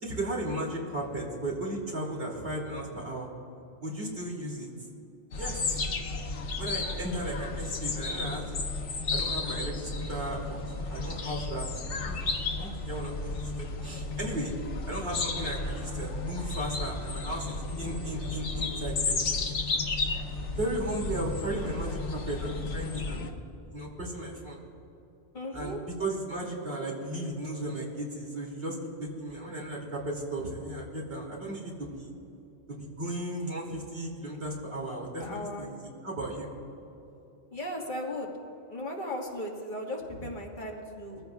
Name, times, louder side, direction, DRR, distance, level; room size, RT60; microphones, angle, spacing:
voice 1, 0.0-3.3 3.8-4.7 5.3-5.8 6.6-8.6 9.1-10.6 10.9-11.7 12.0-14.5 14.9-19.4 20.6-23.3 23.7-24.6 25.5-32.1 32.7-35.8 36.0-36.5, right 1 dB, 60° right, -2 dB, 2.8 m, -35 dB
sound 1, 5.3-23.3, left 3 dB, 85° left, 1.2 m, -33 dB
voice 2, 25.3-25.8 35.2-35.7 37.5-38.3 38.7-41.2, left 1 dB, 45° left, -1 dB, 1.8 m, -36 dB
21.5 x 15.0 x 2.3 m, 2.9 s
omnidirectional pair, 1.2 m